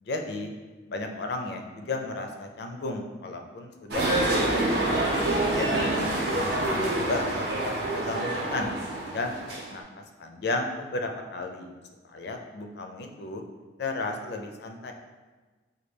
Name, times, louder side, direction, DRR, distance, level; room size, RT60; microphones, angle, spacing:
voice 1, 0.0-0.5 0.9-5.0 5.5-6.0 6.3-8.7 9.1-9.4 9.7-9.8 10.2-11.7 12.0-13.4 13.8-14.9, left 2 dB, 60° left, 3 dB, 0.4 m, -34 dB
sound 1, 3.9-9.8, right 1 dB, 60° right, 0.7 m, -27 dB
4.4 x 2.3 x 3.3 m, 1.3 s
head